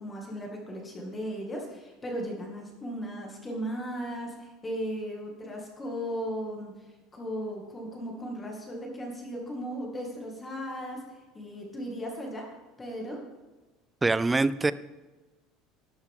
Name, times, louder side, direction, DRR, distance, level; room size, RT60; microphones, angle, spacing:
voice 1, 0.0-6.7 7.1-11.0 11.3-12.5 12.8-13.2, equal, 15° left, -1 dB, 2.2 m, -36 dB
voice 2, 14.0-14.7, right 3 dB, 10° right, 16 dB, 0.4 m, -24 dB
12.5 x 11.5 x 3.7 m, 1.2 s
cardioid pair, 165°, 0 cm